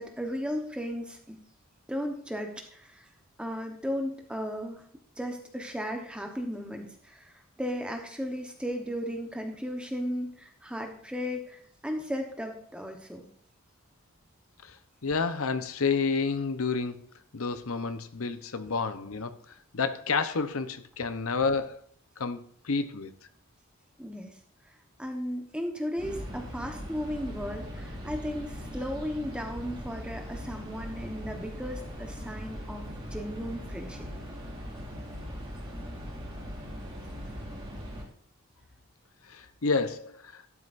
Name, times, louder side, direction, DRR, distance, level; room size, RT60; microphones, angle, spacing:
voice 1, 0.0-1.4 1.9-3.0 3.4-4.8 5.2-7.3 7.6-13.2 24.0-24.3 25.0-34.1, equal, 5° right, 1.1 m, -35 dB
voice 2, 15.0-17.0 17.3-19.3 19.7-21.8 22.2-22.4 22.6-23.1 39.3-40.4, left 4 dB, 80° left, 0.9 m, -29 dB
sound 1, 26.0-38.0, equal, 20° right, 2.9 m, -40 dB
12.0 x 9.7 x 2.6 m
head